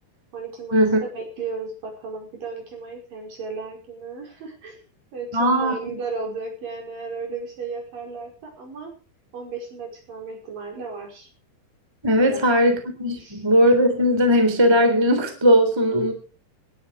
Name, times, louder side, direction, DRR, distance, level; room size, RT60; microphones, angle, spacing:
voice 1, 0.3-4.8 5.1-8.9 9.3-11.3 12.3-12.4 13.2-13.4, right 4 dB, 55° right, 2 dB, 6.6 m, -34 dB
voice 2, 5.3-5.7 12.0-16.1, equal, 5° right, 6 dB, 2.9 m, -18 dB
19.5 x 11.5 x 5.0 m, 0.36 s
omnidirectional pair, 4.9 m